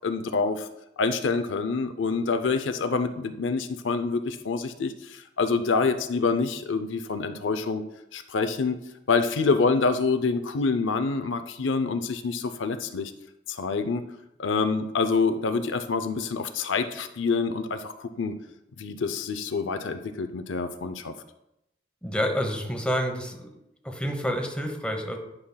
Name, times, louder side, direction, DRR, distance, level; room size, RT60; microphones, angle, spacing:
voice 1, 0.0-0.7 1.0-7.8 8.1-8.8 9.1-13.1 13.5-14.0 14.4-18.3 18.8-21.1, left 4 dB, 85° left, 9 dB, 0.5 m, -26 dB
voice 2, 22.0-23.5 23.8-25.2, equal, 5° left, 3 dB, 0.9 m, -28 dB
11.5 x 5.6 x 2.2 m, 0.85 s
head